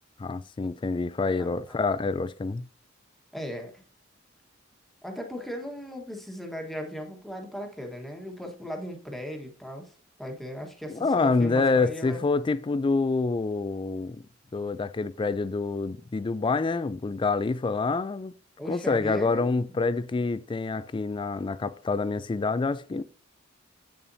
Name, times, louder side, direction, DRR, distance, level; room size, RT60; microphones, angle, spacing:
voice 1, 0.2-2.6 10.9-14.2 14.5-18.3 18.7-23.0, left 3 dB, 25° left, 0.3 m, -27 dB
voice 2, 3.3-3.7 5.0-9.9 10.2-12.2 18.6-19.5, equal, ahead, 1.3 m, -37 dB
8.7 x 7.0 x 2.7 m
head